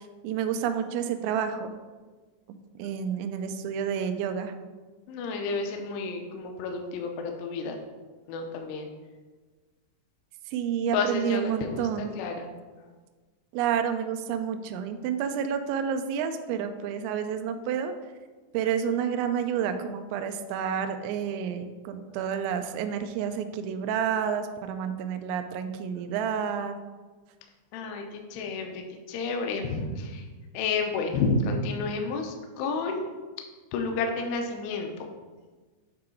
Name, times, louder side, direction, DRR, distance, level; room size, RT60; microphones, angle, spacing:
voice 1, 0.0-1.7 2.5-4.5 10.5-12.1 13.5-17.9 18.5-26.8, right 8 dB, 85° right, 7 dB, 2.6 m, -29 dB
voice 2, 5.1-7.8 8.3-8.9 10.9-12.5 12.8-12.9 22.1-22.2 25.9-26.0 27.7-30.3 30.5-33.1 33.7-35.1, left 4 dB, 90° left, 3 dB, 2.4 m, -31 dB
8.5 x 3.8 x 4.4 m, 1.3 s
omnidirectional pair, 5.7 m